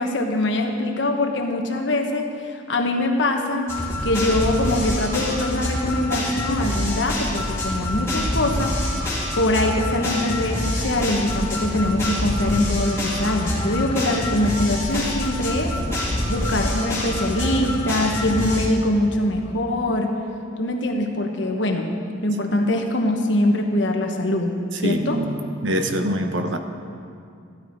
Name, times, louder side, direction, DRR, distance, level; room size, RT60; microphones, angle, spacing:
voice 1, 0.0-2.3 2.7-3.7 4.0-8.7 9.3-15.8 16.3-20.1 20.6-21.9 22.2-25.2, left 1 dB, 70° left, 3 dB, 1.3 m, -23 dB
sound 1, 3.7-18.7, left 1 dB, 15° left, 2.8 m, -26 dB
voice 2, 24.8-26.6, right 1 dB, 70° right, 7 dB, 0.9 m, -24 dB
15.0 x 12.0 x 4.6 m, 2.4 s
head